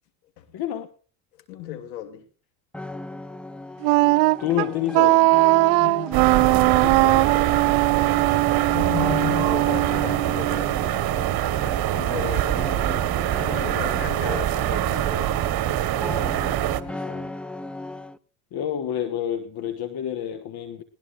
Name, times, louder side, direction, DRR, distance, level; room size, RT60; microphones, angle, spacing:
voice 1, 0.5-0.9 4.4-5.3 6.7-7.7 16.9-17.3 18.5-20.8, left 10 dB, 50° left, 1.5 m, -29 dB
voice 2, 1.5-2.2 5.8-6.3 8.4-11.5 12.0-12.7 13.4-15.6, left 10 dB, 85° left, 2.9 m, -35 dB
sound 1, 2.7-18.2, left 1 dB, ahead, 0.6 m, -37 dB
Wind instrument woodwind instrument, 3.8-10.8, right 24 dB, 70° right, 0.7 m, -20 dB
sound 2, 6.1-16.8, right 13 dB, 45° right, 1.6 m, -24 dB
21.0 x 19.5 x 2.5 m
supercardioid pair, 90°, 50 cm